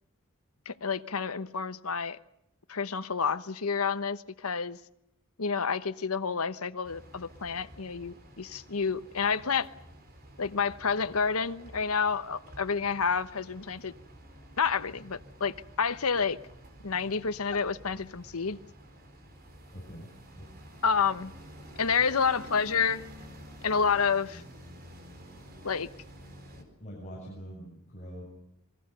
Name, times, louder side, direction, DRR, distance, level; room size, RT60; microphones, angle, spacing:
voice 1, 0.7-2.2 2.7-4.8 5.4-9.7 10.4-13.9 14.6-16.4 16.8-18.6 20.8-21.3 21.8-23.0 23.6-24.4 25.6-25.9, left 5 dB, 90° left, 13 dB, 1.1 m, -29 dB
sound 1, 6.8-26.6, equal, 45° right, 4.1 m, -50 dB
voice 2, 19.7-20.5 26.6-28.2, equal, 35° left, -3 dB, 7.4 m, -44 dB
27.5 x 21.5 x 6.8 m, 0.81 s
head